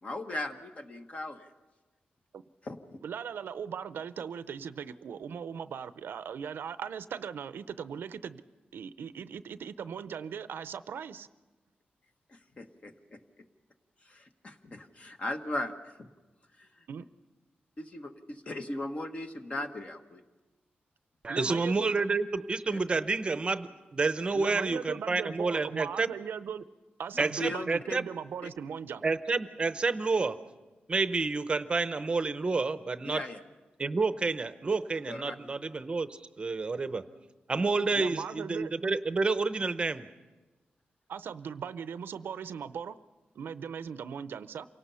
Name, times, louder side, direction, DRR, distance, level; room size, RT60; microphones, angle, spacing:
voice 1, 0.0-1.5 2.6-3.0 12.6-13.2 14.1-16.1 16.6-16.7 17.8-20.2 22.7-22.8 27.2-28.0 28.4-28.5 33.0-33.4 35.1-35.4, left 1 dB, 35° left, 6 dB, 1.3 m, -38 dB
voice 2, 3.0-8.4 8.7-11.3 16.9-17.0 21.3-22.0 24.3-26.6 27.0-29.0 37.9-38.7 41.1-43.0 43.3-44.7, right 7 dB, 80° right, 14 dB, 0.6 m, -39 dB
voice 3, 21.2-26.1 27.2-28.0 29.0-30.4 30.9-33.2 33.8-37.0 37.5-40.1, right 3 dB, 30° right, 12 dB, 0.7 m, -29 dB
27.5 x 18.0 x 5.6 m, 1.2 s
wide cardioid pair, 130°, 4 cm